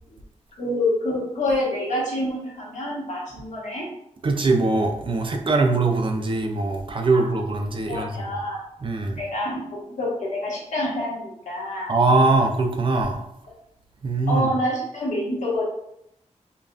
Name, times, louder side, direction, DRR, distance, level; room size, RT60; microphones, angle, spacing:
voice 1, 0.6-3.9 7.1-7.4 7.9-8.6 9.2-11.9 14.3-15.6, left 1 dB, 85° left, -5 dB, 1.4 m, -27 dB
voice 2, 4.2-8.1 8.8-9.2 11.9-13.2 14.0-14.5, right 3 dB, 45° right, 4 dB, 0.5 m, -21 dB
5.1 x 2.4 x 2.5 m, 0.78 s
wide cardioid pair, 145°, 12 cm